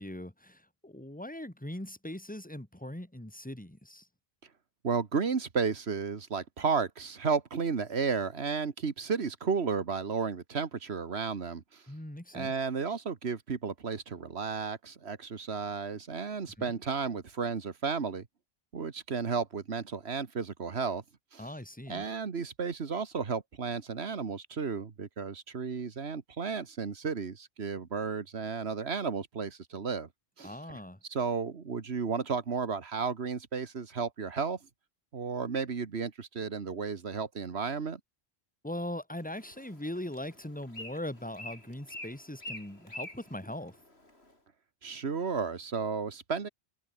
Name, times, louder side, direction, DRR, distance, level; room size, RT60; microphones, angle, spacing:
voice 1, 0.0-4.1 11.9-12.5 16.6-16.7 21.4-22.0 30.4-31.0 38.6-43.8, left 1 dB, 5° left, 2.8 m, -40 dB
voice 2, 4.8-11.8 12.3-18.3 18.7-21.0 21.3-21.5 21.9-30.1 30.4-30.8 31.1-34.6 35.1-38.0 44.8-46.5, right 5 dB, 75° right, 1.8 m, -33 dB
Bird, 39.2-44.3, left 1 dB, 75° left, 7.2 m, -47 dB
open air
omnidirectional pair, 1.1 m